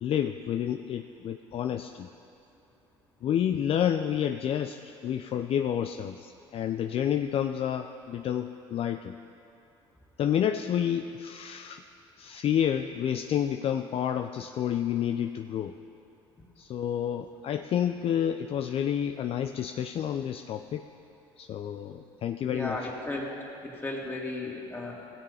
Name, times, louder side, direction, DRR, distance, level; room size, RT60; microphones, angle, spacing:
voice 1, 0.0-2.1 3.2-9.1 10.2-11.8 12.2-15.7 16.6-20.8 21.4-22.8, left 9 dB, 50° left, 7 dB, 0.5 m, -29 dB
voice 2, 22.5-23.3 23.6-24.9, left 2 dB, 15° left, -3 dB, 2.8 m, -34 dB
17.0 x 6.9 x 5.6 m, 2.7 s
supercardioid pair, 75°, 12 cm